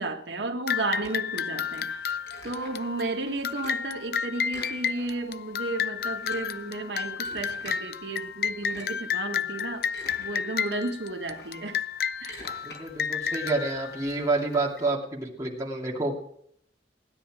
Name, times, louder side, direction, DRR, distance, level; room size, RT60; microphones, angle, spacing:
voice 1, 0.0-2.0 2.4-11.8 12.2-12.6, right 2 dB, 85° right, 3 dB, 1.6 m, -33 dB
sound 1, 0.7-14.8, left 7 dB, 60° left, 0.5 m, -32 dB
sound 2, 1.0-3.0 3.3-3.9 4.4-5.4 5.6-5.7 6.0-7.8 8.5-9.1 9.6-10.4 10.8-14.1, left 2 dB, 85° left, 4.9 m, -47 dB
voice 2, 12.7-16.3, right 2 dB, 20° right, -3 dB, 2.5 m, -29 dB
16.5 x 10.0 x 4.9 m, 0.67 s
head